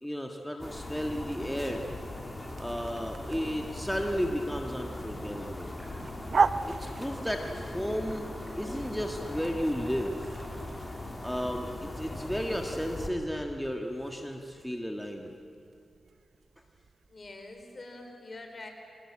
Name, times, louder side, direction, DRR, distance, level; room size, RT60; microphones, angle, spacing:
voice 1, 0.0-1.9 2.6-5.7 6.7-10.3 11.2-15.3, equal, 5° left, 2 dB, 1.6 m, -33 dB
sound 1, 0.6-13.1, left 1 dB, 25° left, 3.0 m, -40 dB
sound 2, 0.8-17.7, right 5 dB, 60° right, 0.7 m, -39 dB
sound 3, 4.9-10.9, equal, 15° right, 7.3 m, -53 dB
voice 2, 17.1-18.7, left 2 dB, 40° left, 4 dB, 4.5 m, -45 dB
25.5 x 20.0 x 8.7 m, 2.5 s
cardioid pair, 75°, 0 cm